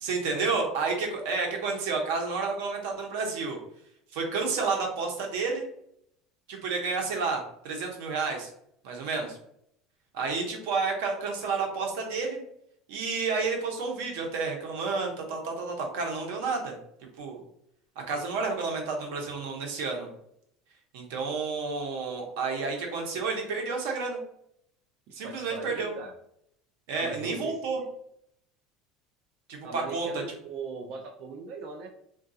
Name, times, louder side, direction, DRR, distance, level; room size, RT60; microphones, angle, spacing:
voice 1, 0.0-3.6 4.1-5.7 6.5-8.5 8.8-9.4 10.1-12.4 12.9-16.8 17.2-17.4 18.1-20.1 20.9-24.2 25.1-25.9 26.9-27.8 29.5-30.1, right 4 dB, 85° right, 2 dB, 0.8 m, -30 dB
voice 2, 25.2-26.1 26.9-27.8 29.6-31.9, right 4 dB, 50° right, 2 dB, 0.4 m, -40 dB
3.6 x 2.3 x 2.6 m, 0.72 s
cardioid pair, 165°, 0 cm